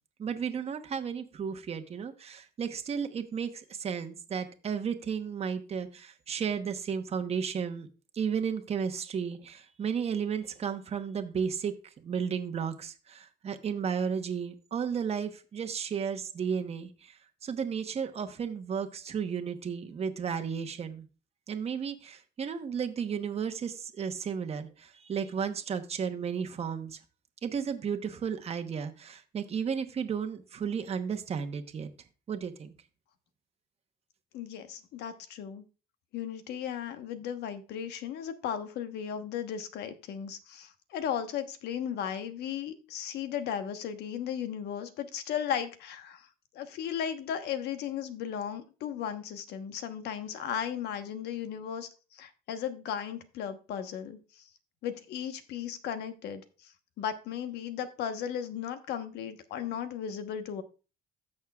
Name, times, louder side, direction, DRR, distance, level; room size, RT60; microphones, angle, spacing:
voice 1, 0.2-7.9 8.1-21.0 21.5-27.0 27.4-31.9 32.3-32.7, right 7 dB, 40° right, 6 dB, 1.0 m, -33 dB
voice 2, 34.3-35.6 36.1-46.3 46.5-54.5 54.8-60.6, left 8 dB, 75° left, 9 dB, 1.1 m, -36 dB
15.5 x 6.5 x 2.3 m, 0.33 s
cardioid pair, 110°, 17 cm